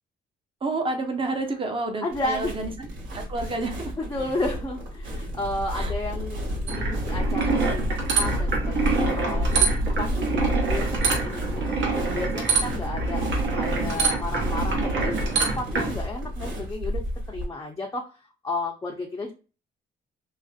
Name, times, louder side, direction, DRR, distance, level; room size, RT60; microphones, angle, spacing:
voice 1, 0.6-2.9 3.1-4.0 5.7-5.9 9.8-10.2, right 2 dB, 25° right, 5 dB, 0.6 m, -30 dB
voice 2, 2.0-2.5 4.0-11.8 12.1-13.2 13.5-18.1 18.4-19.3, left 2 dB, 15° left, -1 dB, 0.5 m, -33 dB
sound 1, 2.1-17.5, equal, 80° right, 1.3 m, -30 dB
sound 2, 6.7-15.9, right 4 dB, 65° right, 0.9 m, -26 dB
2.5 x 2.1 x 2.4 m, 0.33 s
cardioid pair, 90°, 20 cm